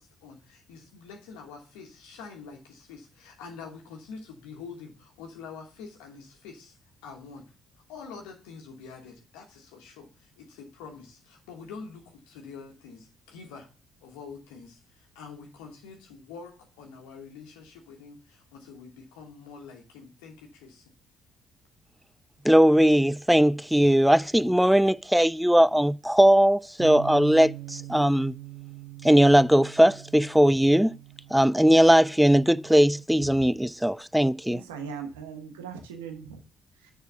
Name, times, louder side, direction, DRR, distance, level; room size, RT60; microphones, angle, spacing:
voice 1, 0.0-6.7 7.0-7.5 7.9-13.7 14.0-20.9, left 5 dB, 75° left, 1.2 m, -46 dB
voice 2, 22.4-28.3 29.0-30.9 31.3-34.6, equal, 5° right, 0.4 m, -19 dB
Bass guitar, 26.8-33.0, right 17 dB, 55° right, 0.7 m, -42 dB
voice 3, 34.5-36.4 36.8-36.9, right 6 dB, 85° right, 1.2 m, -39 dB
6.6 x 4.8 x 6.8 m
hypercardioid pair, 50°, 0 cm